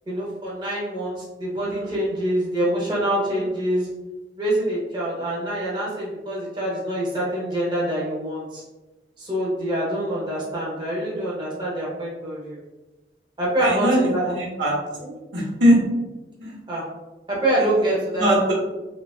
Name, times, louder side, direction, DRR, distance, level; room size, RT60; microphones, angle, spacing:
voice 1, 0.1-3.9 4.4-8.6 9.2-12.6 13.4-14.3 15.0-15.1 16.7-16.9 17.3-18.3, right 1 dB, 25° right, -6 dB, 0.8 m, -25 dB
voice 2, 1.6-1.9 13.6-14.8 15.3-15.8 16.4-16.6 17.8-18.5, equal, 85° right, -4 dB, 0.9 m, -21 dB
3.1 x 2.3 x 2.3 m, 1.1 s
head